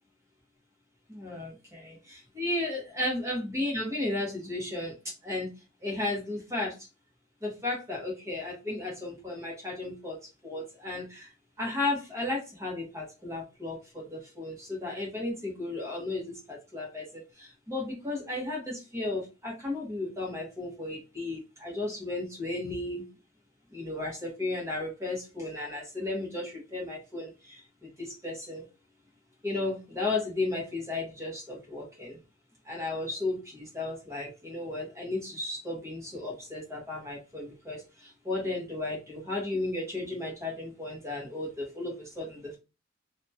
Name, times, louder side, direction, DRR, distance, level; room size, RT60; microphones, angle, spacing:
voice 1, 1.1-1.8 2.4-4.9 5.2-5.5 5.8-6.7 7.4-10.1 10.4-11.2 11.6-13.8 14.1-16.3 16.7-17.0 17.7-23.0 23.7-27.3 28.0-28.6 29.4-32.2 32.7-37.8 38.2-42.6, left 2 dB, 15° right, -3 dB, 1.1 m, -34 dB
2.8 x 2.3 x 2.7 m, 0.29 s
head